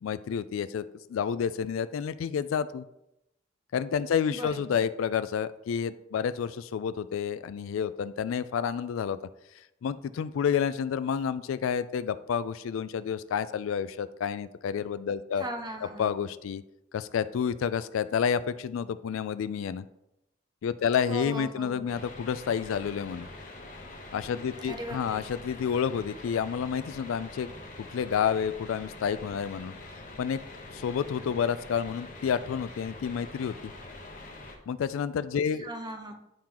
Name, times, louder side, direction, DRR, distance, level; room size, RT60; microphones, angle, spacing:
voice 1, 0.0-2.8 3.7-9.2 9.8-15.4 16.0-16.6 16.9-19.9 20.6-23.3 24.1-27.5 27.8-29.7 30.2-30.4 30.7-33.7 34.7-35.7, left 7 dB, 80° left, 14 dB, 0.3 m, -29 dB
voice 2, 4.3-4.9 15.4-16.1 21.1-21.9 24.6-25.3 35.6-36.1, right 1 dB, 20° right, 4 dB, 0.7 m, -38 dB
sound 1, 21.9-34.6, left 2 dB, 45° left, 1.0 m, -45 dB
10.0 x 3.7 x 3.0 m, 0.86 s
head